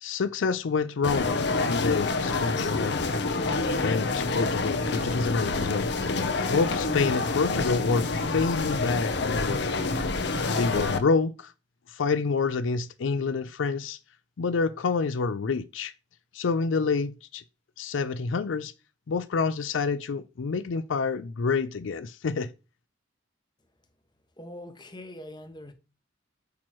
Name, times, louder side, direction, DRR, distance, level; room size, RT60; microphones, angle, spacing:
voice 1, 0.0-3.1 3.8-6.2 6.4-9.6 10.4-11.5 11.9-14.0 14.4-15.9 16.3-17.4 17.8-18.7 19.1-22.5, left 4 dB, 85° left, 0.5 m, -28 dB
sound 1, 1.0-11.0, left 3 dB, 60° left, 0.8 m, -27 dB
voice 2, 24.4-25.7, left 1 dB, 25° left, 1.1 m, -42 dB
8.6 x 3.1 x 6.0 m
head